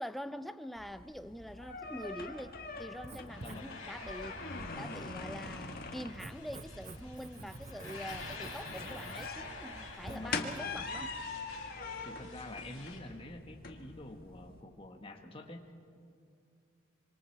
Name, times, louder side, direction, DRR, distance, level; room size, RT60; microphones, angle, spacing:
voice 1, 0.0-4.4 4.7-11.1, equal, ahead, 0.4 m, -44 dB
sound 1, 0.8-14.6, left 3 dB, 45° left, 1.6 m, -44 dB
Writing, 2.9-10.6, right 2 dB, 30° right, 0.8 m, -50 dB
sound 2, 3.3-13.0, left 3 dB, 70° left, 5.9 m, -49 dB
voice 2, 3.3-3.8 7.4-7.5 10.1-10.5 11.0-11.1 12.0-15.8, left 1 dB, 25° left, 1.5 m, -47 dB
25.5 x 25.5 x 4.7 m
head